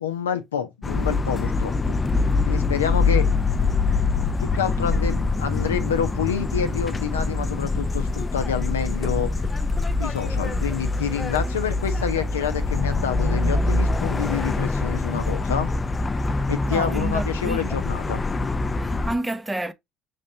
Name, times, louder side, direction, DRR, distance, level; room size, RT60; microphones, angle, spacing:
voice 1, 0.0-2.0 2.5-3.3 4.1-9.3 10.0-15.7 16.5-18.2, left 8 dB, 90° left, 0.5 m, -28 dB
sound 1, 0.8-19.2, left 3 dB, 25° left, 0.4 m, -24 dB
voice 2, 16.7-17.8 18.8-19.7, right 1 dB, 15° right, 0.6 m, -30 dB
5.2 x 3.3 x 2.7 m
hypercardioid pair, 55°, 0 cm